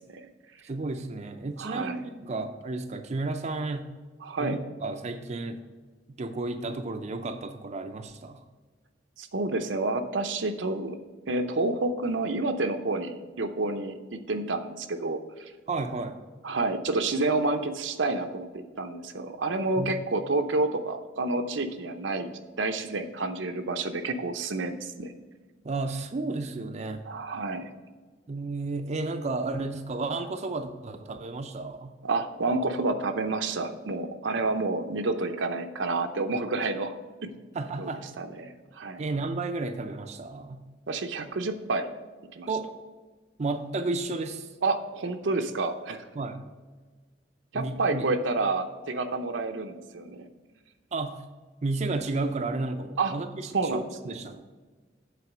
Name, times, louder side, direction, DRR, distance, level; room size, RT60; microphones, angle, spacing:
voice 1, 0.6-3.9 4.4-5.6 6.2-8.4 15.7-16.2 19.8-19.9 25.6-27.1 28.3-31.9 37.5-38.1 39.0-40.6 42.5-42.7 43.4-44.5 46.2-46.4 47.5-48.1 50.9-51.2 51.6-54.4, right 3 dB, 40° right, 6 dB, 0.5 m, -32 dB
voice 2, 1.6-2.0 4.2-4.6 9.2-11.0 11.3-15.2 16.4-25.1 27.1-27.7 32.0-36.9 37.2-37.3 37.8-37.9 38.2-39.0 40.9-41.9 42.4-42.5 44.6-46.0 47.5-50.3 53.0-53.1 53.5-53.9, right 3 dB, 80° right, 7 dB, 0.7 m, -29 dB
8.4 x 4.1 x 6.0 m, 1.4 s
head